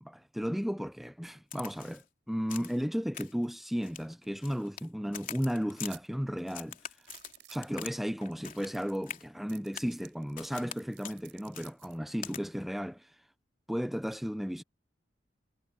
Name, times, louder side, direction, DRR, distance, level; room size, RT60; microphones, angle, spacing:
voice 1, 0.0-6.8 7.5-13.1 13.7-14.6, equal, ahead, 0.5 m, -34 dB
Crack, 1.5-2.0 2.5-2.8 3.1-3.5 3.8-4.9 5.1-5.9 6.5-8.0 8.2-8.8 9.1-9.2 9.7-10.0 10.4-10.8 11.0-11.2 11.5-11.7 12.2-12.4, left 9 dB, 45° left, 3.4 m, -44 dB
sound 1, 5.8-6.1 6.4-6.5 7.0-7.7 8.3-8.4 8.6-9.1 9.5-12.0, right 14 dB, 80° right, 4.2 m, -54 dB
head